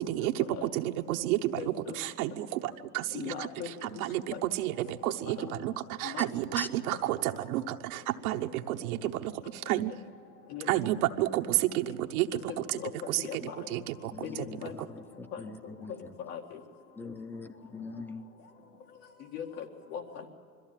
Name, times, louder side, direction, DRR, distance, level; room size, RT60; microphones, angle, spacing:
voice 1, 0.0-9.9 10.7-12.8 13.1-13.4 13.7-14.3 14.8-14.9, right 14 dB, 70° right, 0.9 m, -31 dB
voice 2, 1.6-2.0 3.1-3.7 4.3-4.4 5.4-5.5 6.1-6.3 10.5-10.7 12.5-12.9 13.2-13.6 14.2-14.7 15.3-15.4 16.3-16.6 19.3-20.3, left 8 dB, 70° left, 2.2 m, -39 dB
voice 3, 14.0-16.1 17.0-18.3, left 3 dB, 5° left, 0.6 m, -42 dB
21.5 x 14.0 x 9.0 m
supercardioid pair, 130°, 45 cm